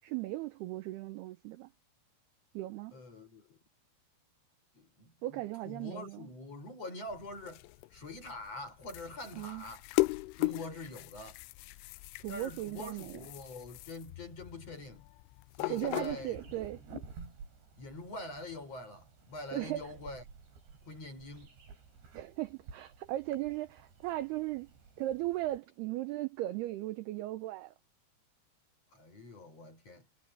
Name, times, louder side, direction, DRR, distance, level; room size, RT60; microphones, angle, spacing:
voice 1, 0.0-1.7 2.5-2.9 5.2-6.3 9.3-9.7 12.2-13.2 15.7-16.8 19.5-19.9 22.1-24.7 25.0-27.7, right 16 dB, 80° right, 2.3 m, -37 dB
voice 2, 2.9-3.6 4.7-7.6 7.9-9.8 10.4-11.4 12.3-15.1 15.6-16.4 17.8-20.2 20.8-21.5 28.9-30.1, left 2 dB, 30° left, 6.7 m, -45 dB
sound 1, 7.1-16.7, left 23 dB, 90° left, 3.1 m, -38 dB
sound 2, 16.1-25.6, right 4 dB, 65° right, 7.8 m, -52 dB
omnidirectional pair, 5.5 m